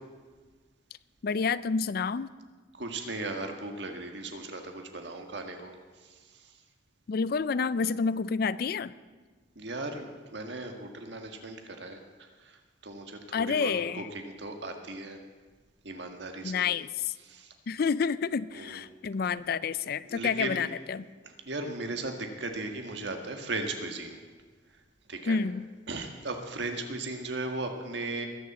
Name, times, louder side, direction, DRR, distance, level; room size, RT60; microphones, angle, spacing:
voice 1, 1.2-2.3 7.1-8.9 13.3-14.1 16.4-17.1 17.7-21.0 25.3-25.7, left 5 dB, 50° left, 17 dB, 0.4 m, -29 dB
voice 2, 2.8-5.7 9.6-12.0 12.4-12.6 12.8-15.2 15.8-16.6 17.2-17.5 18.5-18.8 20.1-20.6 21.5-24.2 25.1-25.4 25.9-28.3, right 2 dB, 65° right, 4 dB, 1.7 m, -37 dB
21.0 x 7.3 x 7.3 m, 1.4 s
head